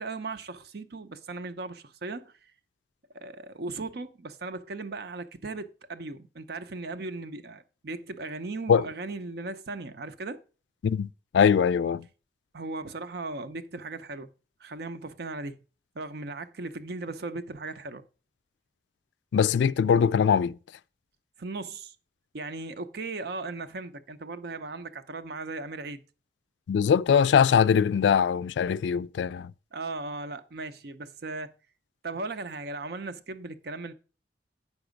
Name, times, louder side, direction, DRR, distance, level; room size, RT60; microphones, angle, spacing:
voice 1, 0.0-2.3 3.1-10.4 12.5-14.3 14.6-15.6 15.9-18.0 21.4-21.9 22.3-26.0 29.7-31.5 32.0-33.9, right 3 dB, 60° right, 0.7 m, -37 dB
voice 2, 11.3-12.0 19.3-20.6 26.7-29.5, left 7 dB, 75° left, 0.3 m, -22 dB
8.4 x 6.0 x 5.1 m
head